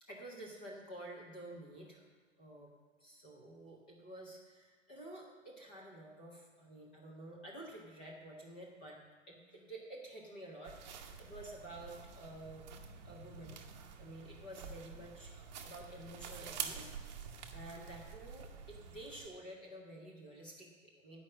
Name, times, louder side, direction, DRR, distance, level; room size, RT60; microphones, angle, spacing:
voice 1, 0.0-2.1 2.4-2.7 3.0-9.0 9.3-12.7 13.0-13.6 14.0-17.1 17.5-21.2, right 1 dB, 10° left, -3 dB, 0.4 m, -50 dB
sound 1, 10.6-19.3, right 6 dB, 35° right, 0.8 m, -48 dB
9.4 x 5.4 x 7.3 m, 1.5 s
hypercardioid pair, 165°, 37 cm